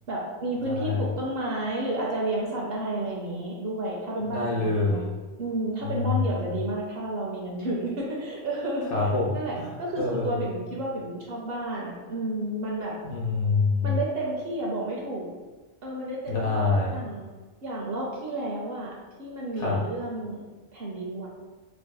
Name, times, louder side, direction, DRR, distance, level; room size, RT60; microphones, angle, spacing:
voice 1, 0.1-5.0 5.4-12.9 13.8-15.3 15.8-16.6 16.9-17.3 17.6-20.4 20.7-21.3, right 1 dB, 60° right, -3 dB, 0.7 m, -31 dB
voice 2, 0.6-1.1 4.2-5.1 5.8-6.2 8.9-9.7 10.0-10.6 13.0-13.9 16.3-17.0 19.6-19.8, left 3 dB, 65° left, -3 dB, 1.1 m, -26 dB
4.7 x 2.5 x 2.2 m, 1.3 s
omnidirectional pair, 1.3 m